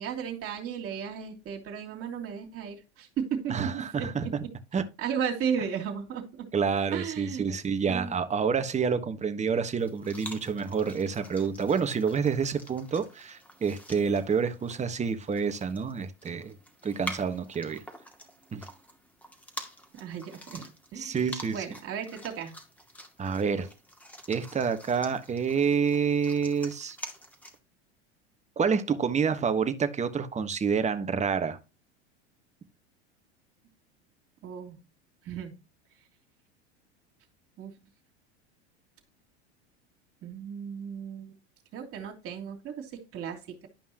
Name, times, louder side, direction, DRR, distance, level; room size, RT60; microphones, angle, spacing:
voice 1, 0.0-4.3 5.0-6.5 6.9-7.6 7.9-8.1 19.9-21.2 21.5-22.6 34.4-34.8 35.2-35.5 37.6-37.8 40.2-41.3 41.7-43.7, right 7 dB, 40° right, 3.0 m, -35 dB
voice 2, 3.5-4.3 4.7-4.8 6.5-16.5 16.8-17.8 18.5-18.6 21.0-21.7 23.2-23.7 24.3-27.0 28.6-31.6, right 6 dB, 20° right, 1.3 m, -28 dB
sound 1, 9.8-27.6, equal, 5° left, 2.1 m, -46 dB
11.5 x 5.3 x 2.9 m
hypercardioid pair, 90°, 33 cm